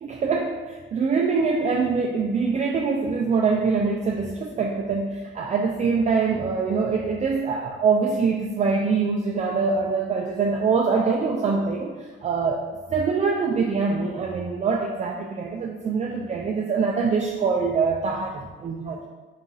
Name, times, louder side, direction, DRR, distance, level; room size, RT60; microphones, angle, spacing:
voice 1, 0.0-12.6 12.9-19.1, right 5 dB, 35° right, 0 dB, 0.4 m, -24 dB
4.1 x 2.5 x 3.7 m, 1.3 s
cardioid pair, 90°, 20 cm